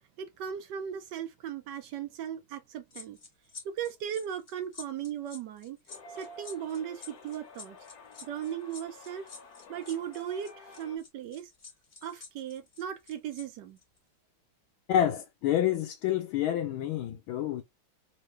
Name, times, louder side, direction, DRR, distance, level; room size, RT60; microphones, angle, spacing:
voice 1, 0.2-3.2 3.6-5.8 6.2-7.8 8.2-9.3 9.7-11.5 12.0-13.8, right 9 dB, 70° right, 1.1 m, -37 dB
sound 1, 2.9-13.4 13.8-14.0, left 5 dB, 35° left, 0.9 m, -49 dB
sound 2, 5.9-11.0, left 2 dB, 60° left, 1.1 m, -50 dB
voice 2, 14.9-17.6, left 11 dB, 80° left, 1.4 m, -28 dB
3.8 x 2.7 x 3.2 m
omnidirectional pair, 2.3 m